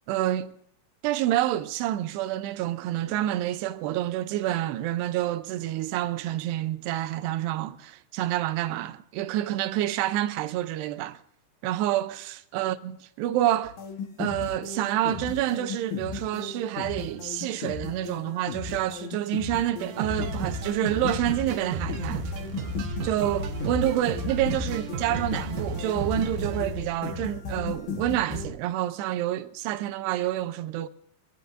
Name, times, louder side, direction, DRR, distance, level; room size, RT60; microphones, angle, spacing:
voice 1, 0.1-0.5 1.0-11.2 11.6-13.8 14.2-22.3 23.0-30.9, right 13 dB, 85° right, 2.8 m, -28 dB
sound 1, 13.7-28.5, left 4 dB, 65° left, 2.2 m, -35 dB
sound 2, 19.8-26.6, right 3 dB, 70° right, 2.2 m, -34 dB
23.5 x 15.0 x 2.6 m
omnidirectional pair, 4.7 m